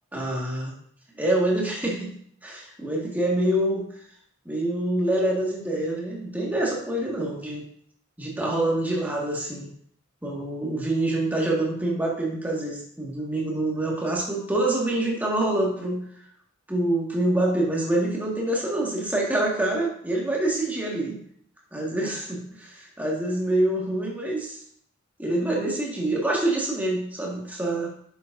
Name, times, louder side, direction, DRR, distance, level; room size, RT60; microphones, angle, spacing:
voice 1, 0.1-0.7 1.1-2.1 2.4-3.9 4.5-7.6 8.2-9.7 10.2-16.0 16.7-21.2 21.7-22.4 23.0-24.6 25.2-27.9, right 1 dB, 10° right, -3 dB, 1.8 m, -26 dB
10.0 x 7.0 x 2.6 m, 0.63 s
head